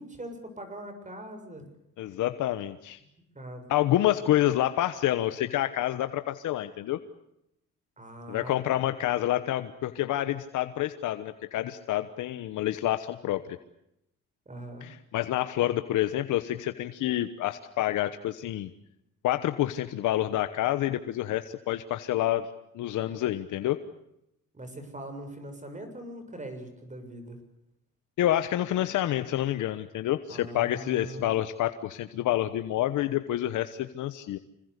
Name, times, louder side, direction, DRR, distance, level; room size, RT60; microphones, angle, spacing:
voice 1, 0.0-1.7 3.3-3.7 8.0-8.6 14.5-14.9 24.5-27.4 30.3-31.2, right 1 dB, 25° right, 8 dB, 7.0 m, -41 dB
voice 2, 2.0-3.0 3.7-7.0 8.3-13.4 14.8-18.7 19.2-22.5 22.7-23.8 28.2-34.4, left 13 dB, 85° left, 10 dB, 1.2 m, -28 dB
26.5 x 20.5 x 8.3 m, 0.81 s
cardioid pair, 90°, 30 cm